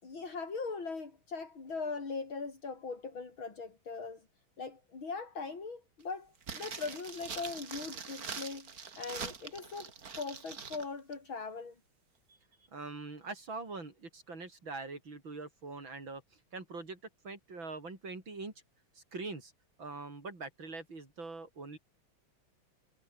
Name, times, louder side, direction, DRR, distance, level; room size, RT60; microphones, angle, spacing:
voice 1, 0.0-4.2 4.6-9.9 10.2-11.8, left 4 dB, 70° left, 5.1 m, -40 dB
sound 1, 6.4-10.9 11.1-11.2, right 5 dB, 45° right, 2.4 m, -43 dB
voice 2, 12.7-16.2 16.5-17.0 17.2-18.5 19.0-19.5 19.8-21.8, right 3 dB, 65° right, 5.8 m, -43 dB
omnidirectional pair, 2.3 m